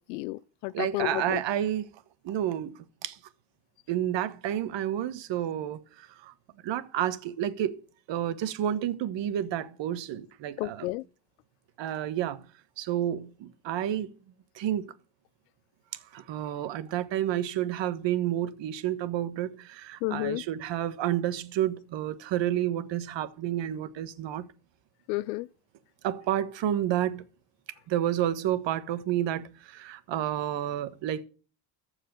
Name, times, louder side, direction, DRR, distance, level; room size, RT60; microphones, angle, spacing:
voice 1, 0.0-1.4 10.6-11.0 20.0-20.4 25.1-25.5, left 20 dB, 90° left, 0.6 m, -31 dB
voice 2, 0.7-1.9 2.2-3.2 3.9-6.3 6.6-7.8 8.1-10.9 11.8-12.4 12.8-14.1 14.5-14.9 16.1-24.5 26.0-27.2 27.9-31.2, right 11 dB, 65° right, 1.5 m, -30 dB
14.5 x 4.9 x 9.1 m
supercardioid pair, 70°, 47 cm